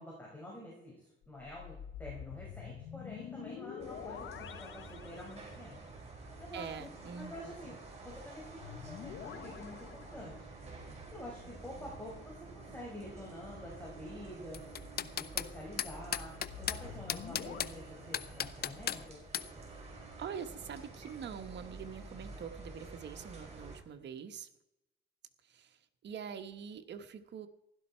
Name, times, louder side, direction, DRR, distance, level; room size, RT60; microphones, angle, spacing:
voice 1, 0.0-5.8 6.4-7.7 8.0-10.5 11.1-14.6 15.0-19.2, left 1 dB, 10° left, -4 dB, 5.7 m, -48 dB
sound 1, 1.2-5.8 8.6-10.7 16.3-17.6, left 9 dB, 75° left, 1.2 m, -47 dB
sound 2, 3.8-23.8, right 3 dB, 30° right, 4.9 m, -50 dB
voice 2, 6.5-7.8 20.2-24.5 25.4-27.5, right 7 dB, 60° right, 7 dB, 1.3 m, -45 dB
sound 3, 14.5-15.5 15.8-16.8 17.1-17.7 18.1-19.0 19.3-19.5, left 10 dB, 50° left, 0.6 m, -35 dB
16.0 x 11.5 x 4.5 m, 0.88 s
cardioid pair, 90°, 20 cm